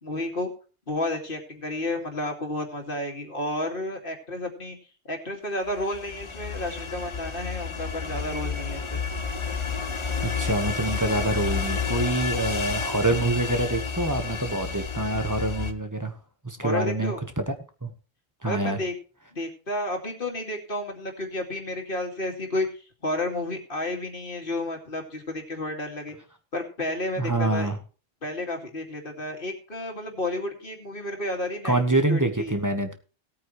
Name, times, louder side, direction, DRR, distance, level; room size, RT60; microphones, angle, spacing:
voice 1, 0.0-0.5 0.9-4.8 5.0-9.0 16.6-17.2 18.4-18.9 19.3-22.7 23.0-26.1 26.5-27.7 28.2-32.5, left 1 dB, 50° left, 3 dB, 2.6 m, -31 dB
sound 1, 5.7-15.7, left 5 dB, 30° left, 0.7 m, -30 dB
voice 2, 10.2-16.1 16.4-17.5 17.8-17.9 18.4-18.8 27.2-27.8 31.6-32.9, right 2 dB, 15° right, 7 dB, 1.3 m, -26 dB
18.0 x 8.8 x 3.2 m, 0.36 s
omnidirectional pair, 1.2 m